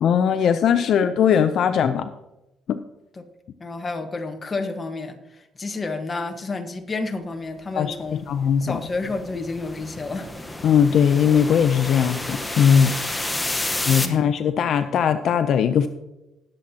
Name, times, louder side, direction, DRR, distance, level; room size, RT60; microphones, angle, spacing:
voice 1, 0.0-2.1 2.7-2.8 7.8-8.0 8.3-8.8 10.6-13.0 13.8-15.9, left 8 dB, 60° left, 10 dB, 0.5 m, -19 dB
voice 2, 3.6-8.3 8.6-10.3 14.0-14.3, left 3 dB, 25° left, 5 dB, 1.3 m, -30 dB
sound 1, 8.1-14.1, left 1 dB, 10° left, 1.1 m, -30 dB
19.5 x 7.5 x 2.8 m, 0.97 s
cardioid pair, 125°, 0 cm